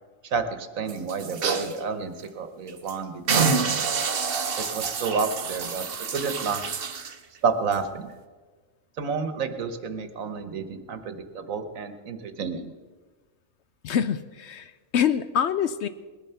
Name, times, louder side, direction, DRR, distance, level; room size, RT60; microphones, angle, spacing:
voice 1, 0.2-3.8 4.6-5.9 6.1-6.6 7.4-8.1 9.0-12.7, right 5 dB, 75° right, 9 dB, 1.5 m, -30 dB
sound 1, 0.9-1.8 2.2-2.3 2.7-2.9 3.3-7.2 7.7-7.8, right 5 dB, 45° right, 1.1 m, -27 dB
voice 2, 13.8-15.9, left 8 dB, 65° left, 12 dB, 0.8 m, -25 dB
19.5 x 11.0 x 5.7 m, 1.4 s
omnidirectional pair, 1.4 m